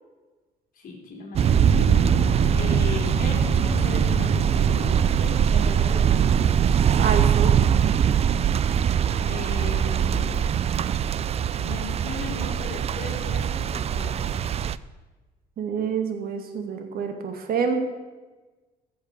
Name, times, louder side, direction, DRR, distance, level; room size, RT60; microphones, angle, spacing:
voice 1, 0.7-1.9 2.5-6.7 9.2-10.5 11.6-14.4, left 4 dB, 55° left, -1 dB, 3.4 m, -37 dB
Bowed string instrument, 1.4-6.1, left 7 dB, 75° left, 1.2 m, -35 dB
sound 1, 1.4-14.8, right 8 dB, 40° right, 0.4 m, -22 dB
voice 2, 7.0-7.5 15.6-17.8, right 6 dB, 60° right, 5 dB, 2.1 m, -27 dB
14.5 x 7.1 x 6.7 m, 1.2 s
cardioid pair, 110°, 17 cm